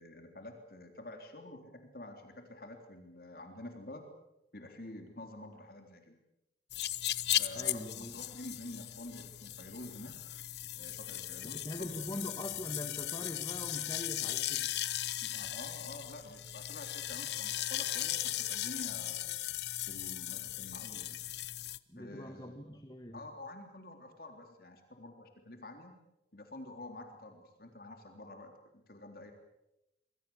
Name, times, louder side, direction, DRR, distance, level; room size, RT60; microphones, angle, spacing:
voice 1, 0.0-4.0 4.5-6.2 7.3-10.2 10.8-12.0 15.2-19.4 19.9-21.3 22.0-22.6 23.1-26.0 26.3-29.3, left 1 dB, 55° left, 4 dB, 3.5 m, -48 dB
sound 1, 6.7-21.8, left 13 dB, 75° left, 0.9 m, -37 dB
voice 2, 7.5-8.2 11.4-15.1 21.9-23.2, left 1 dB, 20° left, 6 dB, 1.7 m, -43 dB
27.5 x 23.0 x 7.2 m, 0.90 s
head